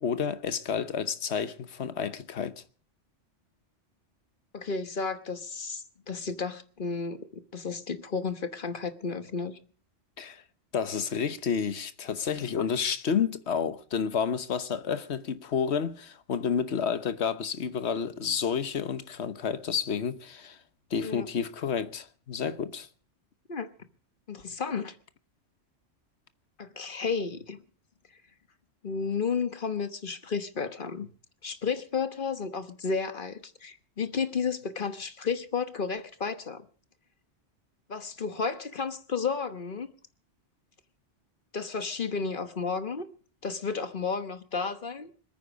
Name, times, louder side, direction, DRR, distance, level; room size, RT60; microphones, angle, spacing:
voice 1, 0.0-2.6 10.2-10.4 10.7-20.6 20.9-22.9, left 7 dB, 65° left, 1.3 m, -30 dB
voice 2, 4.5-9.6 21.0-21.3 23.5-23.7 24.3-25.0 26.6-27.6 28.8-31.1 31.4-36.6 37.9-39.9 41.5-43.1 43.4-45.1, left 5 dB, 45° left, 1.3 m, -32 dB
26.0 x 9.3 x 5.2 m
omnidirectional pair, 1.2 m